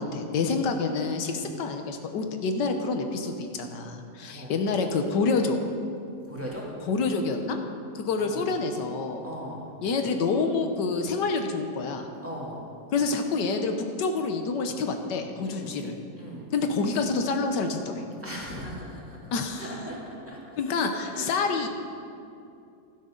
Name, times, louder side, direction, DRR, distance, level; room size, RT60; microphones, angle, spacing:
voice 1, 0.0-5.6 6.8-7.6 7.9-9.2 9.8-12.1 12.9-16.0 16.5-18.0 19.3-19.6 20.6-21.7, left 4 dB, 90° left, 5 dB, 1.6 m, -27 dB
voice 2, 0.5-1.5 4.2-4.5 6.2-6.6 8.2-8.5 9.2-9.7 12.2-12.6 15.4-15.7 16.2-16.5 18.2-20.4 21.1-21.4, equal, 5° right, -6 dB, 2.6 m, -39 dB
16.5 x 12.0 x 3.9 m, 2.6 s
omnidirectional pair, 1.8 m